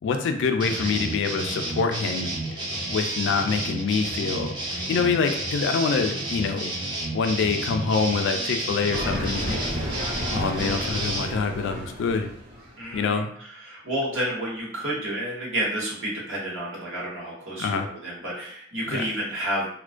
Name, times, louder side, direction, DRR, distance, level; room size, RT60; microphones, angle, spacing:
voice 1, 0.0-2.3 2.9-6.7 7.1-9.6 10.3-12.3 12.9-13.3 17.6-17.9 18.9-19.0, left 5 dB, 65° left, 6 dB, 0.3 m, -25 dB
sound 1, 0.6-11.3, right 1 dB, 25° right, 0.5 m, -31 dB
sound 2, 8.9-12.9, equal, 50° right, 0.9 m, -32 dB
voice 2, 12.8-19.7, right 1 dB, 75° right, -5 dB, 1.0 m, -30 dB
2.4 x 2.1 x 2.4 m, 0.64 s
head